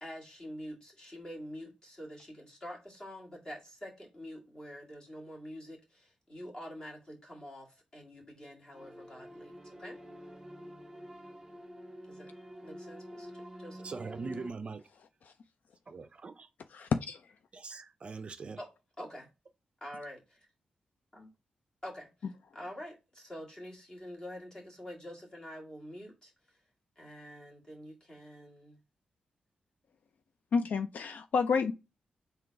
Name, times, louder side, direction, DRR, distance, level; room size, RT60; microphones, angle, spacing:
voice 1, 0.0-10.0 12.1-12.3 12.6-13.9 18.6-18.7 19.0-19.3 19.8-20.5 21.1-21.3 21.8-22.1 22.5-26.6 27.0-28.8, equal, 25° left, 1.9 m, -46 dB
sound 1, 8.7-14.5, equal, 15° right, 1.3 m, -48 dB
voice 2, 13.8-14.8 15.9-16.5 17.5-18.6, right 4 dB, 40° right, 0.4 m, -41 dB
voice 3, 16.7-17.2 30.5-31.7, left 5 dB, 65° left, 0.4 m, -29 dB
3.8 x 2.9 x 4.5 m
wide cardioid pair, 135°, 3 cm